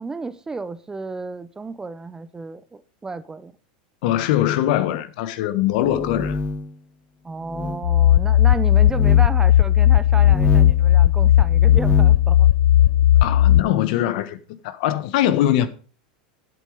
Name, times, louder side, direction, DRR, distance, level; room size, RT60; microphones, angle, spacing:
voice 1, 0.0-3.5 7.2-12.5, right 3 dB, 15° right, 0.6 m, -32 dB
voice 2, 4.0-6.4 13.2-15.7, left 12 dB, 65° left, 1.2 m, -22 dB
sound 1, 5.8-6.7 7.5-7.8 8.8-9.3 10.1-10.9 11.5-12.2, left 3 dB, 25° left, 0.8 m, -26 dB
sound 2, 7.8-13.6, left 12 dB, 80° left, 0.3 m, -15 dB
8.3 x 7.8 x 5.0 m
supercardioid pair, 120°, 5 cm